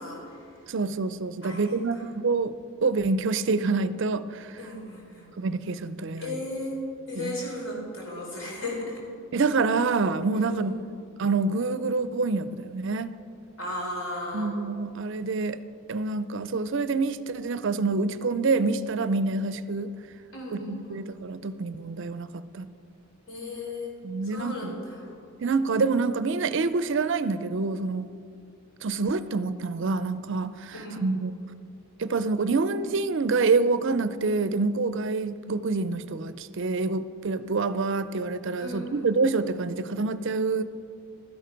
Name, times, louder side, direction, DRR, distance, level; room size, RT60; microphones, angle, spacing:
voice 1, 0.0-0.7 1.4-2.0 4.6-5.3 6.2-9.0 10.3-10.9 13.6-14.5 20.3-21.0 23.3-23.9 24.2-25.1 30.7-31.1 38.6-39.1, left 1 dB, 55° left, -2 dB, 3.8 m, -36 dB
voice 2, 0.7-2.5 2.8-4.6 5.4-6.4 7.2-7.4 9.3-10.7 11.2-13.2 14.3-15.6 15.9-19.9 20.5-22.7 24.0-24.8 25.4-28.1 28.8-31.3 32.0-40.6, right 3 dB, 55° right, 13 dB, 0.4 m, -27 dB
12.5 x 11.0 x 5.1 m, 2.3 s
head